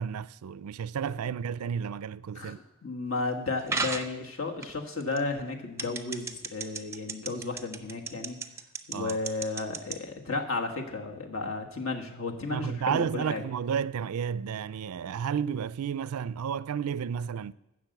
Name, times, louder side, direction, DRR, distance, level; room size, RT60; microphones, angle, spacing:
voice 1, 0.0-2.6 8.9-9.2 12.5-17.5, right 7 dB, 85° right, 0.4 m, -32 dB
voice 2, 2.8-8.4 8.9-13.4, left 3 dB, 65° left, 1.6 m, -33 dB
sound 1, 3.7-4.1 4.6-5.2 5.8-9.9, right 4 dB, 10° right, 0.5 m, -32 dB
11.5 x 6.4 x 7.9 m
head